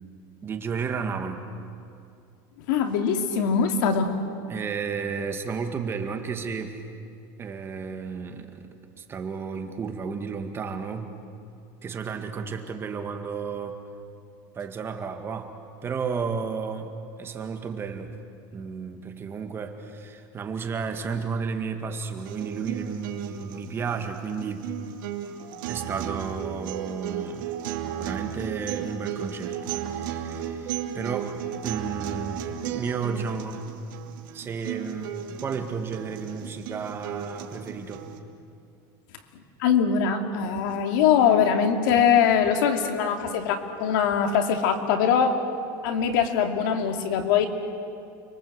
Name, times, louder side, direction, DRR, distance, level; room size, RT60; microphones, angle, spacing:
voice 1, 0.4-1.5 4.5-6.8 7.4-11.1 11.8-13.8 14.5-15.5 15.8-18.1 18.5-24.7 25.7-27.6 28.0-33.7 34.3-38.0, right 5 dB, 20° right, 5 dB, 1.9 m, -33 dB
voice 2, 2.6-4.2 39.6-45.4 45.8-47.5, left 7 dB, 75° left, 5 dB, 2.7 m, -22 dB
sound 1, 22.2-38.2, right 9 dB, 85° right, 2.7 m, -35 dB
30.0 x 23.0 x 8.0 m, 2.4 s
supercardioid pair, 155°, 11 cm